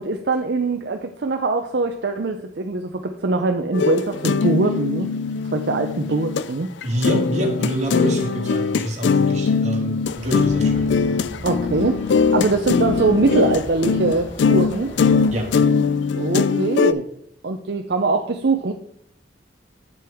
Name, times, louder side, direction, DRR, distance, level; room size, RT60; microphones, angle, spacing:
voice 1, 0.0-5.1 5.5-6.7 11.4-12.0 12.3-14.9 16.2-17.1 17.4-18.7, right 3 dB, 60° right, 5 dB, 0.6 m, -22 dB
sound 1, 3.7-6.5 6.8-16.9, left 5 dB, 70° left, 0.4 m, -21 dB
voice 2, 6.8-10.9 15.3-15.5, equal, 40° right, 1 dB, 1.8 m, -26 dB
sound 2, 10.0-15.6, equal, 35° left, 3.1 m, -37 dB
7.8 x 7.6 x 3.5 m, 0.71 s
head